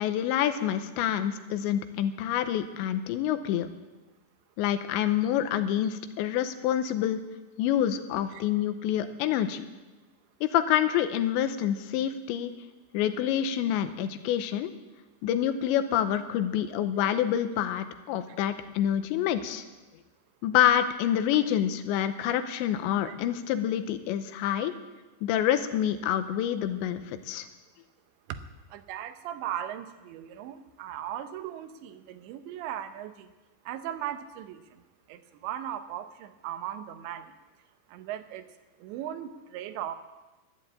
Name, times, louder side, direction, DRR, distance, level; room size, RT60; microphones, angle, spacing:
voice 1, 0.0-3.7 4.6-7.2 7.6-9.7 10.4-12.5 12.9-14.7 15.2-19.6 20.4-24.7 25.2-27.5, left 10 dB, 85° left, 10 dB, 3.1 m, -27 dB
voice 2, 28.7-33.3 33.7-37.3 37.9-38.5 38.8-40.0, right 11 dB, 80° right, 9 dB, 3.1 m, -38 dB
12.5 x 11.0 x 8.8 m, 1.2 s
omnidirectional pair, 5.2 m